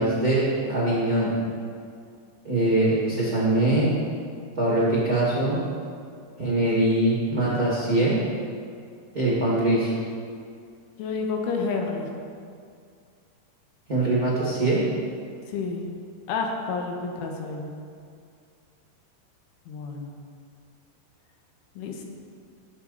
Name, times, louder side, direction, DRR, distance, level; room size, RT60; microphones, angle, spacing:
voice 1, 0.0-1.3 2.4-3.9 4.6-5.6 6.4-8.2 9.1-9.9 13.9-14.8, right 2 dB, 60° right, -6 dB, 0.9 m, -22 dB
voice 2, 11.0-12.1 15.5-15.9 16.3-17.7 19.7-20.1 21.8-22.0, left 4 dB, 80° left, 1 dB, 3.8 m, -29 dB
19.5 x 8.3 x 4.1 m, 2.3 s
omnidirectional pair, 5.5 m